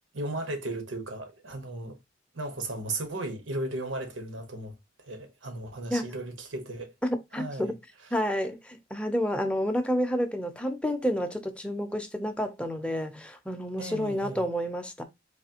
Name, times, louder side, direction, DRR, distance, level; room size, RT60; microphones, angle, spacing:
voice 1, 0.1-2.0 2.3-6.9 7.3-7.7 13.8-14.4, right 2 dB, 85° right, 1.1 m, -36 dB
voice 2, 7.0-7.8 8.1-15.0, equal, 5° left, 0.5 m, -29 dB
4.1 x 2.8 x 2.8 m
head